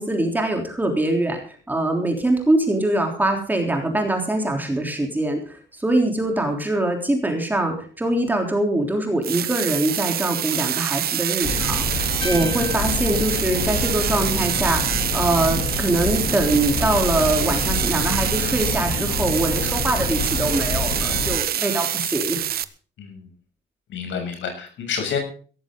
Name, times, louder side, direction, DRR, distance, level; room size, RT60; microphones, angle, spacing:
voice 1, 0.0-1.4 1.7-22.5, right 1 dB, 10° right, 3 dB, 3.4 m, -23 dB
sound 1, 9.2-22.6, right 11 dB, 55° right, 0.9 m, -26 dB
sound 2, 11.4-21.4, left 3 dB, 45° left, 2.8 m, -27 dB
sound 3, 12.2-14.5, left 1 dB, 25° left, 3.4 m, -37 dB
voice 2, 23.0-23.3 23.9-25.2, left 6 dB, 80° left, 4 dB, 7.2 m, -29 dB
17.5 x 14.5 x 3.8 m, 0.41 s
cardioid pair, 180°, 19 cm